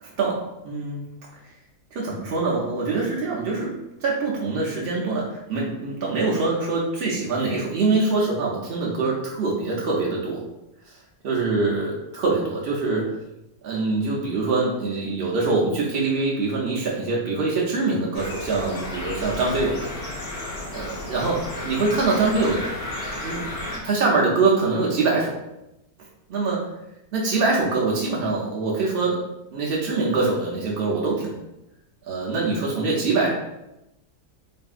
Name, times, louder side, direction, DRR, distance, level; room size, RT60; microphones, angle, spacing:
voice 1, 0.0-1.1 1.9-3.7 4.0-10.4 11.2-13.1 13.6-19.9 20.7-21.4 21.6-22.6 23.2-23.4 23.8-25.4 26.3-26.7 27.1-29.2 29.5-31.4 32.1-33.3, right 3 dB, 85° right, -3 dB, 0.5 m, -24 dB
sound 1, 18.1-23.8, left 1 dB, 55° left, 0.4 m, -33 dB
3.4 x 2.6 x 2.3 m, 0.90 s
omnidirectional pair, 1.7 m